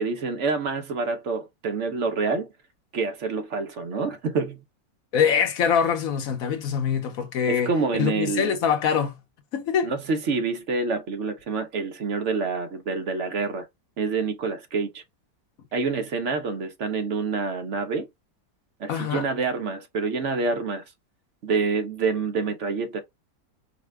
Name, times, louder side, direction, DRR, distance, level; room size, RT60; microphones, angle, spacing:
voice 1, 0.0-2.5 2.9-4.6 7.5-8.6 9.8-13.7 14.0-15.0 15.7-18.1 18.8-20.8 21.4-23.0, right 4 dB, 60° right, 0.8 m, -27 dB
voice 2, 5.1-9.1 9.5-9.9 18.9-19.3, left 7 dB, 60° left, 1.0 m, -24 dB
4.9 x 2.2 x 3.3 m
omnidirectional pair, 1.9 m